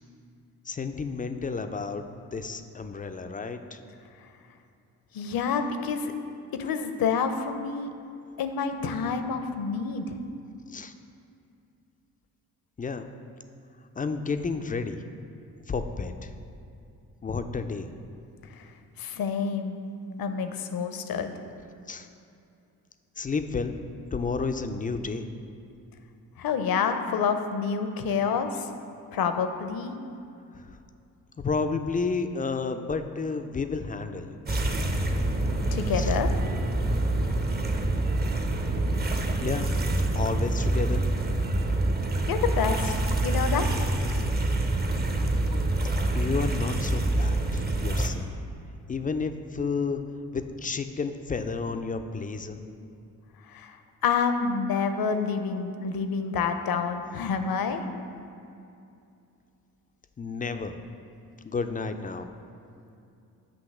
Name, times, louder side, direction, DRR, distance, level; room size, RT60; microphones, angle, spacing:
voice 1, 0.7-2.1 2.3-3.8 6.6-6.7 10.7-10.9 12.8-13.1 14.0-15.0 15.7-16.3 17.2-17.9 21.9-22.1 23.2-23.8 24.1-25.3 30.5-30.8 31.4-34.6 35.9-36.2 39.4-39.7 40.1-41.0 45.8-48.3 48.9-50.0 50.3-52.6 60.2-60.7 61.4-62.3, left 4 dB, 20° left, 7 dB, 0.4 m, -31 dB
voice 2, 5.1-6.1 6.6-7.9 8.4-10.2 18.5-19.8 20.2-21.4 26.4-28.7 29.1-29.9 35.7-36.3 42.3-42.9 43.2-43.7 53.5-53.8 54.0-57.8, left 6 dB, 55° left, 8 dB, 0.7 m, -28 dB
sound 1, 34.5-48.1, right 2 dB, 25° right, 0.6 m, -26 dB
7.8 x 2.9 x 6.0 m, 2.6 s
hypercardioid pair, 40°, 43 cm